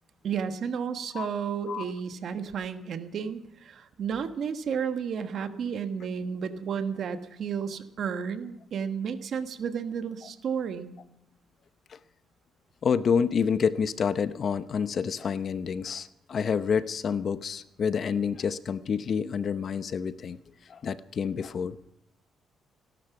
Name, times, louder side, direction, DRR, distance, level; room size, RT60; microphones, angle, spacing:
voice 1, 0.2-11.0, right 7 dB, 60° right, 9 dB, 1.3 m, -32 dB
voice 2, 12.8-20.4 20.7-21.9, left 6 dB, 50° left, 13 dB, 0.8 m, -28 dB
17.5 x 12.0 x 6.0 m, 0.83 s
cardioid pair, 90°, 0 cm